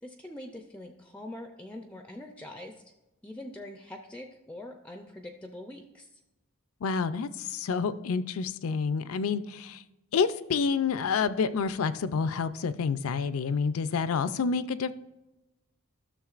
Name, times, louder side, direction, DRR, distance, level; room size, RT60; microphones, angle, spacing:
voice 1, 0.0-2.8 3.2-6.1, left 1 dB, 5° left, 4 dB, 0.4 m, -43 dB
voice 2, 6.8-9.8 10.1-14.9, left 5 dB, 70° left, 14 dB, 0.4 m, -28 dB
12.5 x 6.6 x 2.4 m, 1.0 s
head